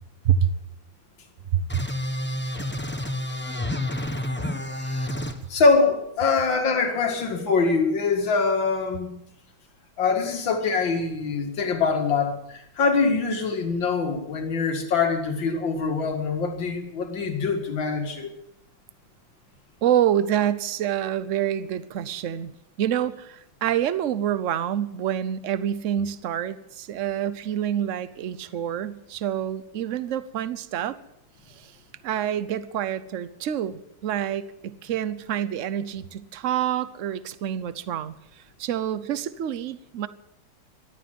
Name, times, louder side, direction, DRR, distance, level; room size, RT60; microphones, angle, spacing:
sound 1, 1.7-5.3, left 1 dB, 10° left, 0.7 m, -29 dB
voice 1, 5.5-9.1 10.0-18.3, left 4 dB, 70° left, 4 dB, 2.7 m, -24 dB
voice 2, 19.8-22.5 22.8-31.0 31.5-31.8 32.0-38.1 38.6-40.1, right 10 dB, 65° right, 15 dB, 0.7 m, -27 dB
14.5 x 12.0 x 7.7 m, 0.82 s
omnidirectional pair, 2.2 m